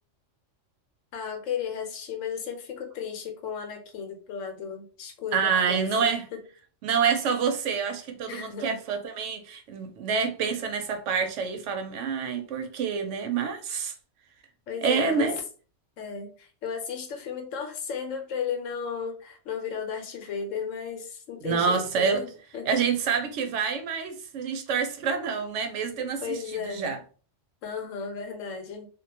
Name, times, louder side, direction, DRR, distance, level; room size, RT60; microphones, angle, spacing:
voice 1, 1.1-6.4 8.3-8.8 14.7-15.3 16.0-22.7 26.2-26.9 27.6-28.9, left 6 dB, 85° left, 1.0 m, -34 dB
voice 2, 5.3-6.2 6.8-13.9 14.8-15.4 21.4-22.2 22.7-27.0, right 6 dB, 75° right, 0.9 m, -27 dB
2.4 x 2.1 x 2.8 m
omnidirectional pair, 1.3 m